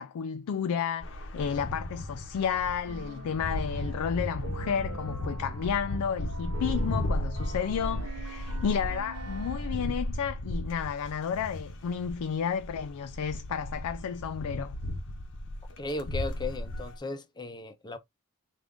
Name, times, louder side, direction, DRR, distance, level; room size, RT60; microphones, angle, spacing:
voice 1, 0.0-14.7, left 7 dB, 75° left, 0.3 m, -32 dB
sound 1, 1.0-17.0, left 1 dB, 60° left, 0.7 m, -35 dB
sound 2, 2.9-10.2, right 3 dB, 75° right, 0.8 m, -45 dB
voice 2, 15.8-18.0, left 2 dB, 20° left, 0.5 m, -36 dB
3.4 x 2.4 x 3.6 m
head